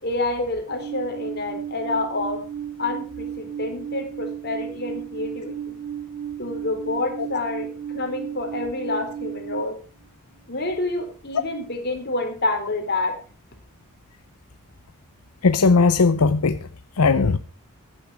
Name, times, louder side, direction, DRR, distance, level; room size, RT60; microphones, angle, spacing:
voice 1, 0.0-2.4 2.8-5.8 6.4-7.7 7.9-9.7 10.5-13.1, left 2 dB, 45° left, 3.9 m, -28 dB
Alarm, 0.7-9.6, right 9 dB, 55° right, 4.8 m, -34 dB
voice 2, 15.4-16.6 17.0-17.4, left 4 dB, 80° left, 0.7 m, -18 dB
14.5 x 9.8 x 4.7 m
head